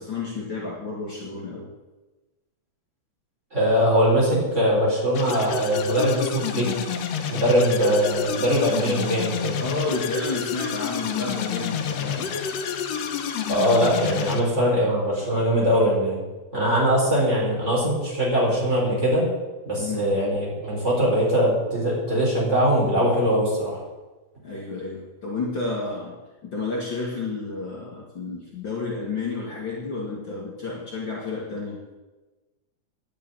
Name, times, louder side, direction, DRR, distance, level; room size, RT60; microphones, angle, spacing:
voice 1, 0.0-1.7 9.6-12.3 19.8-20.1 24.4-26.2 26.4-31.8, left 3 dB, 45° left, -4 dB, 2.4 m, -31 dB
voice 2, 3.5-6.7 7.3-9.6 13.5-16.2 16.5-19.3 19.7-23.8, equal, 25° right, -5 dB, 4.5 m, -21 dB
sound 1, 5.1-14.4, left 7 dB, 70° left, 2.0 m, -29 dB
10.5 x 6.8 x 9.1 m, 1.2 s
omnidirectional pair, 3.3 m